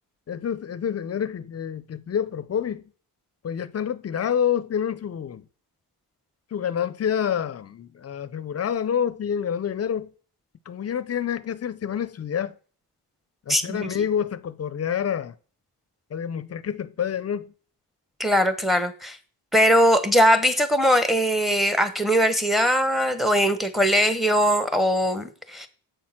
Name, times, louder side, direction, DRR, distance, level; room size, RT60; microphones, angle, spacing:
voice 1, 0.3-2.8 3.4-5.4 6.5-10.1 10.7-12.6 13.5-15.3 16.1-17.5, left 8 dB, 35° left, 0.6 m, -28 dB
voice 2, 13.5-13.9 18.2-19.2 19.5-25.7, equal, ahead, 1.0 m, -21 dB
8.1 x 6.3 x 5.8 m
cardioid pair, 110°, 41 cm